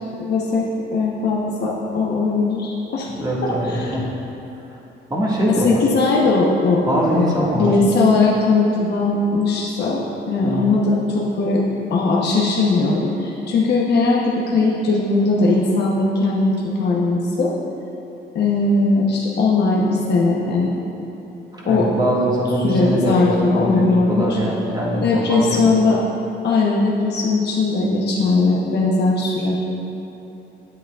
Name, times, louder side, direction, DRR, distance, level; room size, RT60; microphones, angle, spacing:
voice 1, 0.2-3.1 3.4-4.0 5.5-17.5 18.3-20.7 21.7-21.9 22.6-24.4 25.0-26.0 26.4-29.5, left 3 dB, 55° left, -4 dB, 0.9 m, -19 dB
voice 2, 3.1-4.1 5.1-5.8 6.9-7.7 10.4-10.7 21.5-25.8, equal, 20° right, -5 dB, 1.7 m, -22 dB
9.1 x 8.4 x 2.4 m, 3.0 s
cardioid pair, 90°, 20 cm